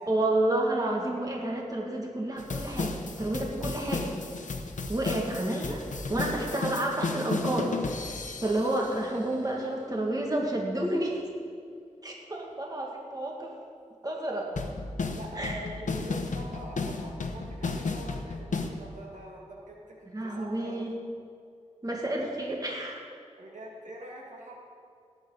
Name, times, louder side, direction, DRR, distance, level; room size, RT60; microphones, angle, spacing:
voice 1, 0.1-4.1 4.9-5.8 6.1-7.7 8.4-11.3 12.0-13.5 14.0-14.5 15.4-15.5 20.1-20.9 21.8-23.0, right 1 dB, 30° right, -1 dB, 2.1 m, -30 dB
sound 1, 2.4-9.0 14.6-18.7, left 3 dB, 85° left, 0.9 m, -34 dB
voice 2, 15.1-20.9 23.4-24.5, right 1 dB, 80° right, -2 dB, 2.0 m, -44 dB
17.5 x 8.8 x 4.0 m, 2.3 s
wide cardioid pair, 65°, 13 cm